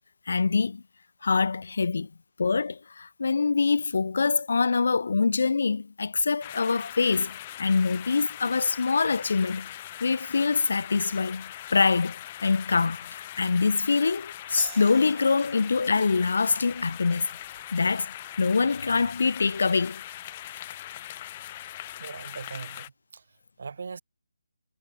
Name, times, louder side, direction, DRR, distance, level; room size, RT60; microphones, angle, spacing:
voice 1, 0.3-0.8 1.2-2.1 2.4-9.7 10.0-17.3 17.7-20.0, left 4 dB, 65° left, 1.1 m, -25 dB
sound 1, 6.4-22.9, left 14 dB, 25° left, 0.5 m, -41 dB
sound 2, 14.6-21.7, right 31 dB, 15° right, 1.2 m, -50 dB
voice 2, 22.0-23.2 23.6-24.0, right 5 dB, 55° right, 1.7 m, -40 dB
hypercardioid pair, 170°, 0 cm